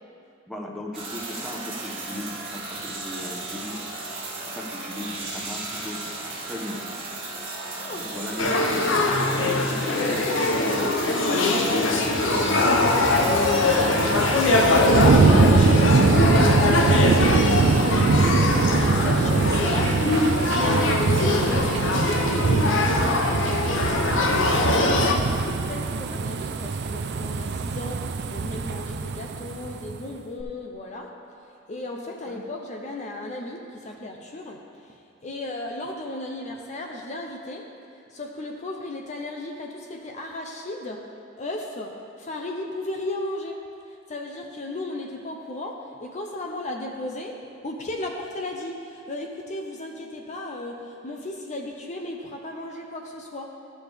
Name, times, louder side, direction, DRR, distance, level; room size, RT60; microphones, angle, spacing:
voice 1, 0.5-3.8 4.4-6.0 6.4-6.8 7.9-8.8 9.3-12.7 13.7-15.1 25.8-26.0 32.3-32.4, left 1 dB, ahead, -1 dB, 0.8 m, -36 dB
sound 1, 0.9-15.1, right 2 dB, 30° right, 1.5 m, -35 dB
voice 2, 7.8-8.2 13.6-18.0 18.3-20.0 20.2-31.2 31.7-35.0 35.2-37.7 38.1-41.1 41.4-43.6 44.1-53.5, left 2 dB, 40° left, 1 dB, 0.6 m, -36 dB
Male speech man speaking / Child speech kid speaking / Conversation, 8.4-25.1, left 2 dB, 75° left, 0.7 m, -22 dB
sound 2, 11.8-30.0 30.4-30.5, right 4 dB, 60° right, 0.4 m, -23 dB
13.0 x 6.3 x 3.5 m, 2.5 s
head